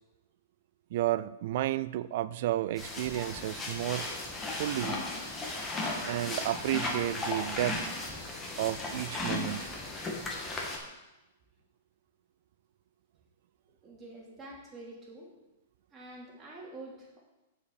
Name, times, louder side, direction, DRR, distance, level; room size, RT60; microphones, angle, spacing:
voice 1, 0.9-4.1 4.6-5.0 6.0-7.8 8.6-9.7, right 14 dB, 60° right, 17 dB, 0.4 m, -32 dB
sound 1, 2.8-10.8, left 2 dB, 15° left, 1.6 m, -36 dB
voice 2, 13.8-15.3 15.9-17.2, right 2 dB, 20° right, -3 dB, 2.7 m, -47 dB
6.7 x 5.0 x 7.0 m, 1.0 s
hypercardioid pair, 120°, 0 cm